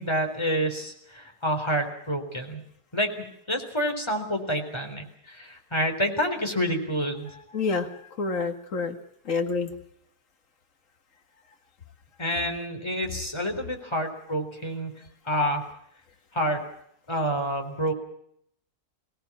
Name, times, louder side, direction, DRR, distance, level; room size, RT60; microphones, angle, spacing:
voice 1, 0.0-2.6 2.9-7.3 12.2-14.9 15.3-15.7 16.3-16.6 17.1-17.9, equal, 15° left, 4 dB, 3.9 m, -28 dB
voice 2, 7.5-9.0 9.3-9.7, left 4 dB, 55° left, 5 dB, 2.3 m, -28 dB
23.5 x 18.0 x 7.3 m, 0.72 s
omnidirectional pair, 1.6 m